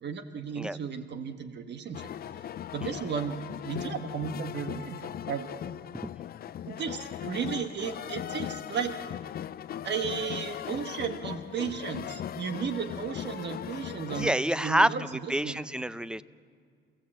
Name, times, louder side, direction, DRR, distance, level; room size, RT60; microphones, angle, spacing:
voice 1, 0.0-2.1 2.7-5.5 6.6-8.9 9.8-15.6, right 6 dB, 60° right, 7 dB, 1.4 m, -34 dB
sound 1, 1.9-14.3, left 10 dB, 50° left, 0.4 m, -38 dB
voice 2, 14.1-16.2, right 1 dB, 5° right, 16 dB, 0.5 m, -27 dB
28.5 x 15.0 x 7.7 m, 2.1 s
cardioid pair, 90°, 20 cm